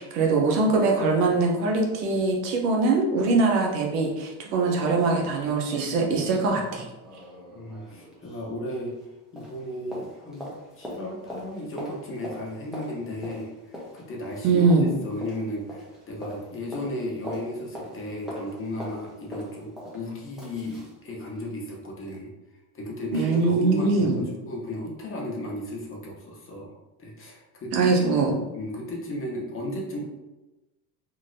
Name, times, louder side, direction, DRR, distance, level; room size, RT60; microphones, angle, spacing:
voice 1, 0.0-6.9 14.4-14.9 23.1-24.2 27.7-28.3, right 3 dB, 90° right, 0 dB, 0.9 m, -22 dB
sound 1, 4.1-4.2 4.5-9.1 9.4-21.0 21.3-21.4, equal, ahead, 0.7 m, -42 dB
voice 2, 7.5-8.9 9.3-14.7 15.0-22.3 22.7-28.0 28.5-30.0, left 1 dB, 25° left, -2 dB, 0.9 m, -35 dB
3.0 x 2.7 x 2.6 m, 1.0 s
supercardioid pair, 110°, 46 cm